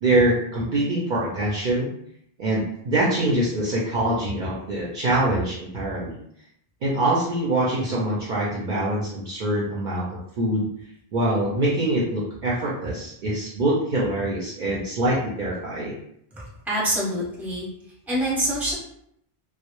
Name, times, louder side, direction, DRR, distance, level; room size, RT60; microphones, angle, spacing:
voice 1, 0.0-1.9 2.4-6.2 6.8-10.7 11.1-16.0, right 1 dB, 60° right, -5 dB, 0.6 m, -24 dB
voice 2, 16.3-17.6 18.1-18.7, right 1 dB, ahead, -7 dB, 0.7 m, -26 dB
2.1 x 2.0 x 2.9 m, 0.72 s
omnidirectional pair, 1.1 m